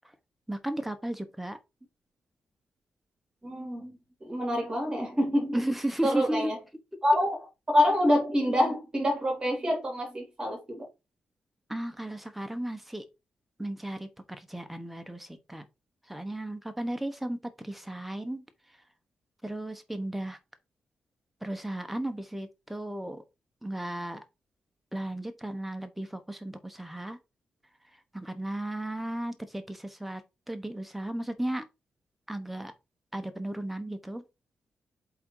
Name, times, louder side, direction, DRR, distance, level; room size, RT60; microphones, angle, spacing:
voice 1, 0.5-1.6 5.5-6.5 11.7-13.0 13.6-14.1 14.4-15.6 16.1-17.4 17.6-18.4 19.4-20.4 21.4-23.2 23.6-24.2 24.9-27.2 28.1-30.2 30.5-31.6 32.3-32.7 33.1-34.2, right 1 dB, 5° right, 1.0 m, -34 dB
voice 2, 3.4-5.6 6.0-6.6 7.0-7.4 7.7-10.8, left 1 dB, 20° right, 3.5 m, -26 dB
7.7 x 3.8 x 4.6 m
wide cardioid pair, 170°, 4 cm